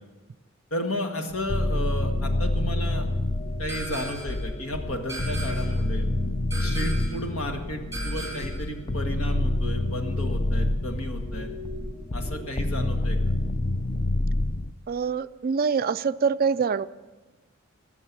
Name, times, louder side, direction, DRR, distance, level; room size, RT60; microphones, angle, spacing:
voice 1, 0.7-3.1 3.6-6.1 6.6-11.5 12.1-13.3, left 1 dB, 70° left, 4 dB, 1.9 m, -33 dB
sound 1, 1.3-14.7, left 1 dB, 25° left, 0.4 m, -27 dB
sound 2, 1.5-13.4, left 1 dB, 5° left, 4.3 m, -45 dB
sound 3, 3.7-4.4 5.1-5.8 6.5-7.2 7.9-8.7, right 2 dB, 15° right, 4.0 m, -37 dB
voice 2, 14.9-16.9, right 6 dB, 45° right, 14 dB, 0.4 m, -25 dB
19.5 x 7.2 x 8.4 m, 1.2 s
head